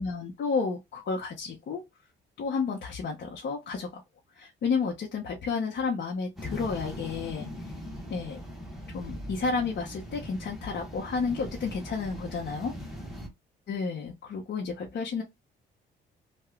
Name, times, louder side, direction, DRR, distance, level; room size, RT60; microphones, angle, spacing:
voice 1, 0.0-1.8 2.4-4.0 4.3-7.7 8.1-8.4 8.9-12.7 13.7-15.2, left 5 dB, 60° left, 0.8 m, -31 dB
sound 1, 6.4-13.3, equal, ahead, 1.1 m, -40 dB
2.9 x 2.3 x 3.5 m
cardioid pair, 90°, 20 cm